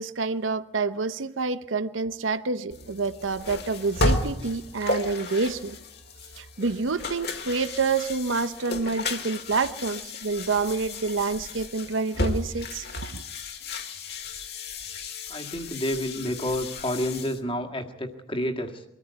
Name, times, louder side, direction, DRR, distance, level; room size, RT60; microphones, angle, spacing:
voice 1, 0.0-5.8 6.4-13.2, right 4 dB, 90° right, 13 dB, 0.8 m, -28 dB
sound 1, 2.7-17.4, left 2 dB, 55° left, 2.0 m, -33 dB
voice 2, 15.3-18.8, equal, 25° left, 4 dB, 1.8 m, -29 dB
23.5 x 14.0 x 8.1 m, 0.91 s
head